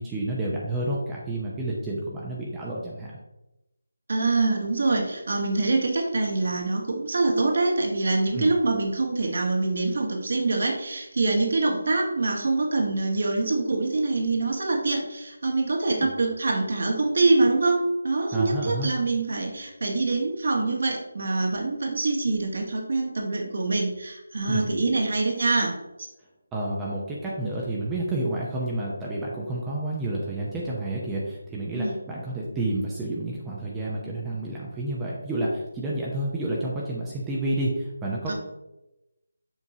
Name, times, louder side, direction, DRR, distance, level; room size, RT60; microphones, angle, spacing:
voice 1, 0.0-3.1 8.3-8.5 16.0-16.1 18.3-18.9 24.5-24.7 26.5-38.3, right 1 dB, 10° right, -5 dB, 0.8 m, -30 dB
voice 2, 4.1-25.7 31.7-32.0 38.3-38.4, right 3 dB, 55° right, 2 dB, 1.4 m, -25 dB
7.2 x 5.2 x 2.8 m, 0.95 s
figure-of-eight pair, 160°, 0 cm